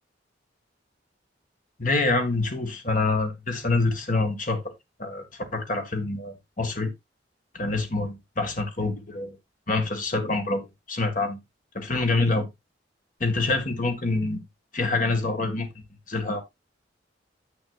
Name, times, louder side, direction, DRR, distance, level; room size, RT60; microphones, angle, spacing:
voice 1, 1.8-4.6 5.0-5.2 5.5-6.9 7.5-9.4 9.7-11.4 11.7-12.5 13.2-14.5 14.7-15.7 16.1-16.4, left 3 dB, 45° left, 1.8 m, -26 dB
9.9 x 8.0 x 2.5 m
head